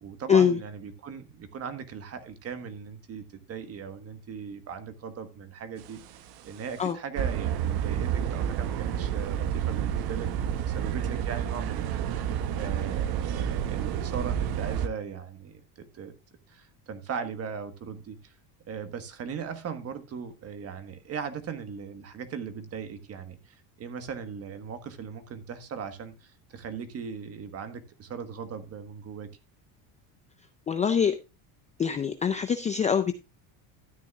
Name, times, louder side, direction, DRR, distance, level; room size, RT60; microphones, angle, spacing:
voice 1, 0.0-12.2 12.6-16.1 16.5-18.3 18.7-29.3, right 6 dB, 30° right, 1.4 m, -39 dB
sound 1, 5.9-6.3 6.7-6.8 7.2-14.9, right 9 dB, 55° right, 0.9 m, -29 dB
voice 2, 30.7-31.2 31.8-33.1, left 7 dB, 15° left, 0.4 m, -23 dB
13.0 x 9.3 x 2.4 m
cardioid pair, 150°, 44 cm